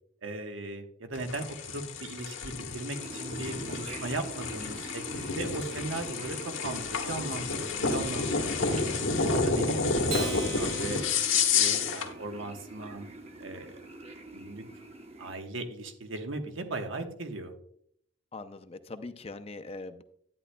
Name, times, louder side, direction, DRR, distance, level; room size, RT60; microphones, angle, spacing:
voice 1, 0.2-8.7 9.1-11.0 11.3-13.1 13.4-13.8 14.3-14.6 15.2-17.5, right 2 dB, 80° right, 5 dB, 1.2 m, -38 dB
sound 1, 1.1-12.1, left 4 dB, 85° left, 1.3 m, -30 dB
sound 2, 2.9-15.4, right 2 dB, 30° right, 0.8 m, -45 dB
Acoustic guitar, 10.1-12.7, right 4 dB, 55° right, 1.2 m, -41 dB
voice 2, 18.3-20.0, left 3 dB, 30° left, 10 dB, 0.5 m, -41 dB
11.0 x 9.7 x 2.2 m, 0.68 s
head